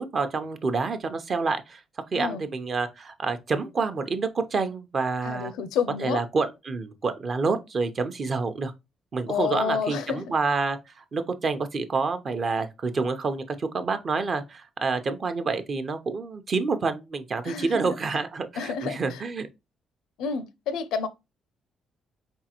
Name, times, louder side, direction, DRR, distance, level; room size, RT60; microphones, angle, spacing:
voice 1, 0.0-1.8 2.1-5.5 6.0-8.7 9.1-19.5, right 4 dB, 45° right, 0.7 m, -28 dB
voice 2, 5.2-6.2 9.3-10.2 17.4-17.9 18.6-19.2 20.2-21.1, left 6 dB, 90° left, 0.5 m, -29 dB
4.2 x 3.6 x 2.9 m
cardioid pair, 90°, 0 cm